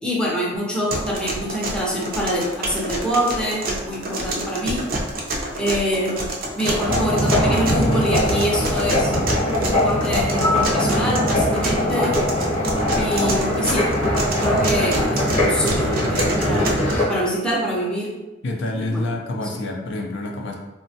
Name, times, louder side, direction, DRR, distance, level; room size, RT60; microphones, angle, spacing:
voice 1, 0.0-4.9 5.3-6.2 6.5-9.1 9.5-12.2 12.9-13.9 14.3-18.1 18.7-19.5, equal, 5° left, -5 dB, 0.5 m, -25 dB
sound 1, 0.9-16.9, right 2 dB, 50° right, 0.5 m, -28 dB
Thunder, 6.6-14.3 14.6-14.7 15.2-15.3, equal, 85° right, 0.9 m, -34 dB
sound 2, 6.8-17.1, left 1 dB, 35° left, 0.8 m, -21 dB
voice 2, 18.4-20.6, left 2 dB, 65° left, 1 dB, 0.4 m, -27 dB
3.1 x 2.1 x 2.6 m, 1.0 s
head